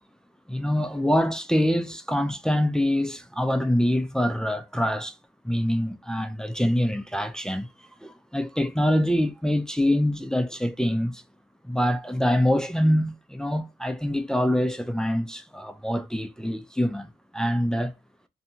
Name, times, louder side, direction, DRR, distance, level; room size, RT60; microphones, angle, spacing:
voice 1, 0.5-5.1 5.4-7.7 8.0-11.2 11.6-17.9, equal, 5° left, 0.3 m, -25 dB
2.6 x 2.2 x 2.7 m
cardioid pair, 90°, 20 cm